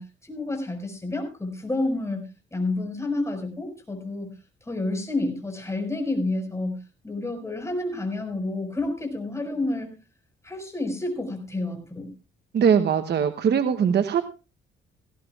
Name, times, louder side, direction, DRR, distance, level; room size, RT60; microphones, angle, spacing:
voice 1, 0.0-4.3 4.7-6.8 7.0-9.9 10.4-12.1, left 2 dB, 15° left, 4 dB, 5.3 m, -29 dB
voice 2, 12.5-14.2, right 7 dB, 55° right, 8 dB, 1.0 m, -21 dB
18.0 x 16.0 x 2.4 m, 0.31 s
cardioid pair, 90°, 20 cm